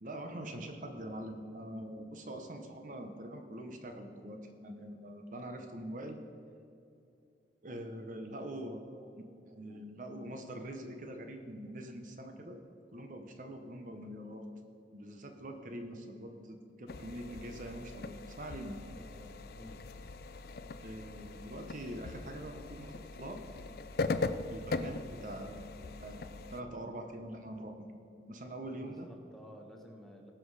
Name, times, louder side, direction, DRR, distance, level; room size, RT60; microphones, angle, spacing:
voice 1, 0.0-6.2 7.6-9.1 9.5-12.6 12.9-14.5 14.9-18.8 20.8-23.5 24.5-25.7 26.0-29.1, right 1 dB, 45° right, 5 dB, 0.9 m, -44 dB
sound 1, 16.9-26.6, left 3 dB, 55° left, 0.5 m, -40 dB
voice 2, 18.9-19.8 28.8-30.3, equal, ahead, 1 dB, 1.1 m, -53 dB
18.5 x 6.2 x 4.8 m, 2.6 s
head